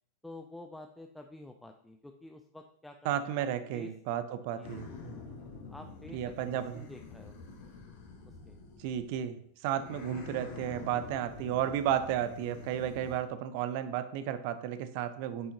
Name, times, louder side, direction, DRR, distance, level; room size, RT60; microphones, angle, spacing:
voice 1, 0.2-3.0 3.2-3.5 3.7-3.9 4.6-4.8 5.7-6.3 6.7-7.4 8.5-8.6, left 2 dB, 5° left, 5 dB, 0.5 m, -49 dB
voice 2, 3.0-5.1 6.1-6.9 8.8-15.5, right 10 dB, 45° right, 12 dB, 0.7 m, -33 dB
sound 1, 4.6-9.3 9.7-13.2, left 4 dB, 50° left, 1.7 m, -47 dB
8.9 x 6.3 x 2.9 m, 0.63 s
figure-of-eight pair, 90°, 0 cm